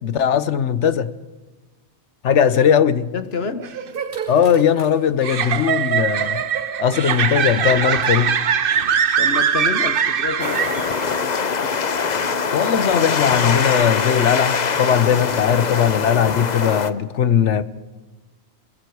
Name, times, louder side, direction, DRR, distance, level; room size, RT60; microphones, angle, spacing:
voice 1, 0.0-1.1 2.2-3.1 4.3-6.4 6.8-8.4 12.5-17.6, left 8 dB, 90° left, 1.2 m, -19 dB
voice 2, 3.1-3.8 9.2-11.9 12.1-12.6, left 5 dB, 65° left, 1.4 m, -30 dB
sound 1, 3.5-3.6 3.8-5.1 5.5-12.3, equal, 75° right, 6.6 m, -42 dB
sound 2, 3.6-11.2, right 7 dB, 55° right, 0.9 m, -22 dB
sound 3, 10.4-16.9, left 5 dB, 40° left, 0.9 m, -23 dB
28.0 x 21.5 x 4.8 m
omnidirectional pair, 1.2 m